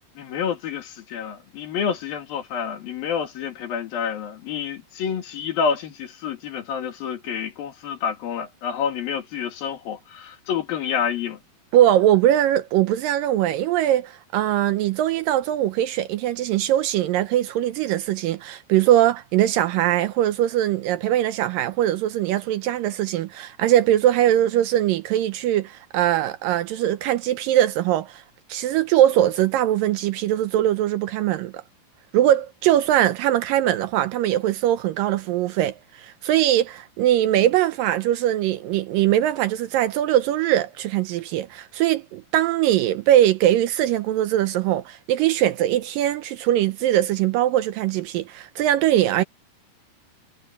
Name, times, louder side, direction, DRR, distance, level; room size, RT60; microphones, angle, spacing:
voice 1, 0.2-11.4, left 7 dB, 70° left, 3.9 m, -28 dB
voice 2, 11.7-28.2 28.5-31.6 32.1-49.2, right 12 dB, 75° right, 2.2 m, -21 dB
omnidirectional pair, 4.4 m